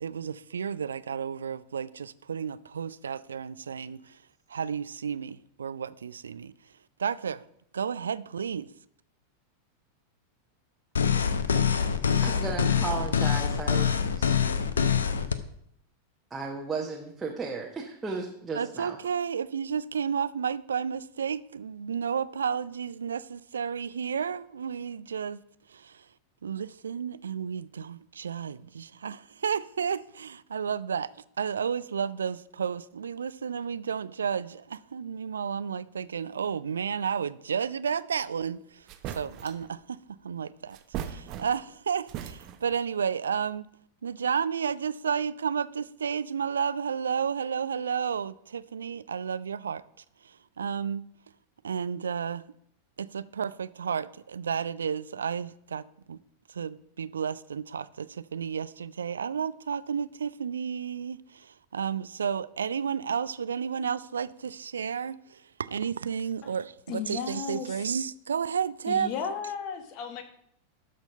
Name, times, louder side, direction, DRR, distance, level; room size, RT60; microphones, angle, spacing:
voice 1, 0.0-4.2 4.5-6.5 7.0-7.4 7.7-8.7 18.5-25.4 25.7-26.1 26.4-31.1 31.4-38.9 39.2-40.0 40.2-40.8 41.0-43.7 44.0-49.8 50.2-51.0 51.6-52.4 53.0-56.2 56.5-69.1, right 7 dB, 70° right, 0.3 m, -32 dB
sound 1, 11.0-15.4, left 7 dB, 70° left, 0.6 m, -25 dB
voice 2, 12.2-14.4 16.3-19.0, right 4 dB, 15° right, 1.0 m, -35 dB
sound 2, 38.4-38.5 38.9-39.7 40.7-41.8 42.1-42.8, right 10 dB, 40° right, 0.8 m, -38 dB
voice 3, 66.9-67.9 68.9-70.2, left 6 dB, 45° left, 1.3 m, -35 dB
12.5 x 4.4 x 5.4 m
figure-of-eight pair, 90°, 0 cm